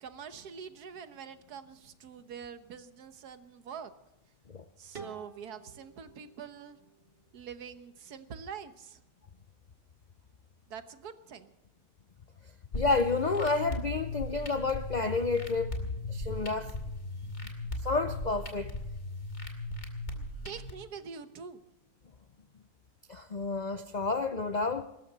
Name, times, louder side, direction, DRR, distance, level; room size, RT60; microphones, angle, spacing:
voice 1, 0.0-3.9 4.8-6.8 7.3-9.0 10.7-11.5 20.1-21.6, right 7 dB, 70° right, 1.6 m, -45 dB
sound 1, 4.9-7.8, right 5 dB, 35° right, 1.7 m, -51 dB
voice 2, 12.7-16.8 17.8-18.8 23.1-24.8, left 3 dB, 65° left, 0.4 m, -30 dB
sound 2, 12.7-20.7, left 1 dB, 40° left, 2.8 m, -38 dB
24.0 x 13.5 x 4.0 m
omnidirectional pair, 1.7 m